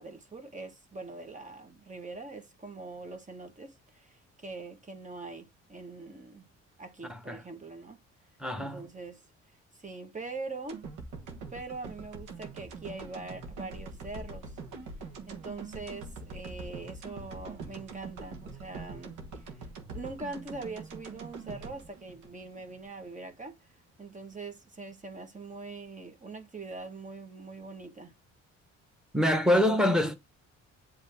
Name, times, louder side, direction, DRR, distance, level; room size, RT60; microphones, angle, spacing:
voice 1, 0.0-6.5 6.8-8.0 8.6-9.2 9.8-10.8 11.5-14.6 15.3-19.7 19.9-23.7 24.0-28.1, right 3 dB, 25° right, 1.4 m, -43 dB
voice 2, 7.1-7.4 8.4-8.9 29.1-30.1, left 1 dB, ahead, 1.5 m, -25 dB
sound 1, 10.7-22.9 23.3-23.4, right 4 dB, 85° right, 1.6 m, -43 dB
8.0 x 3.4 x 3.5 m
cardioid pair, 90°, 30 cm